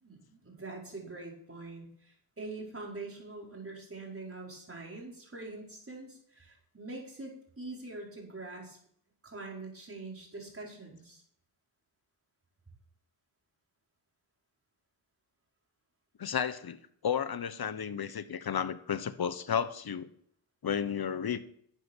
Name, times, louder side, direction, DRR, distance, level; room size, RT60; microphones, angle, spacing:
voice 1, 0.0-8.8 9.2-11.2, right 2 dB, 25° right, -2 dB, 5.1 m, -44 dB
voice 2, 16.2-20.1 20.6-21.4, left 8 dB, 50° left, 13 dB, 1.1 m, -33 dB
12.0 x 8.2 x 4.6 m, 0.64 s
cardioid pair, 60°, 49 cm